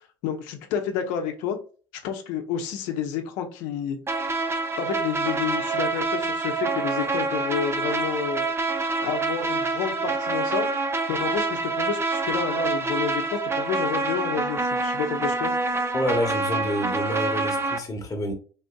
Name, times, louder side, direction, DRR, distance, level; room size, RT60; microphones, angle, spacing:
voice 1, 0.2-1.6 2.0-4.2 4.8-8.5 9.0-10.7 11.1-15.5, left 8 dB, 65° left, 0.8 m, -30 dB
sound 1, 4.1-17.8, right 3 dB, 20° right, 0.6 m, -26 dB
voice 2, 15.9-18.3, equal, 25° left, 1.1 m, -28 dB
4.1 x 2.5 x 2.2 m
hypercardioid pair, 70°, 14 cm